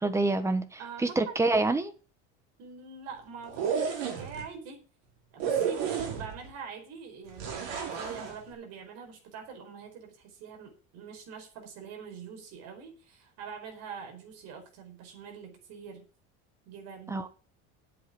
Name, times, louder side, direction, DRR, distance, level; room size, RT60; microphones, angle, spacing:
voice 1, 0.0-1.9 17.1-17.3, right 2 dB, 10° right, 1.1 m, -27 dB
voice 2, 0.8-1.4 2.6-4.9 5.3-16.0 16.6-17.2, right 6 dB, 50° right, 4.8 m, -44 dB
sound 1, 3.4-4.4 5.4-6.5 7.4-8.4, right 7 dB, 75° right, 5.1 m, -31 dB
8.9 x 8.0 x 8.4 m
cardioid pair, 165°, 33 cm